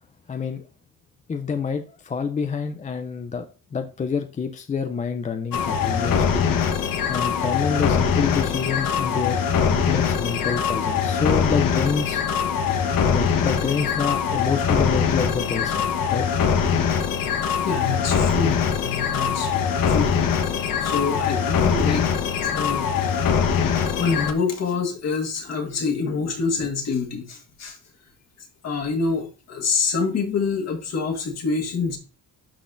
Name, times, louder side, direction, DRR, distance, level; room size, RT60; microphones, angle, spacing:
voice 1, 0.3-0.6 1.3-3.4 3.7-6.5 7.1-12.2 13.1-16.3, left 6 dB, 20° left, 0.4 m, -27 dB
sound 1, 5.5-24.3, left 7 dB, 60° left, 1.1 m, -22 dB
voice 2, 17.6-19.5 19.8-20.2 20.8-22.1 22.4-22.9 24.0-27.8 28.6-32.0, left 5 dB, 45° left, 1.6 m, -26 dB
11.5 x 4.1 x 2.5 m
cardioid pair, 160°, 37 cm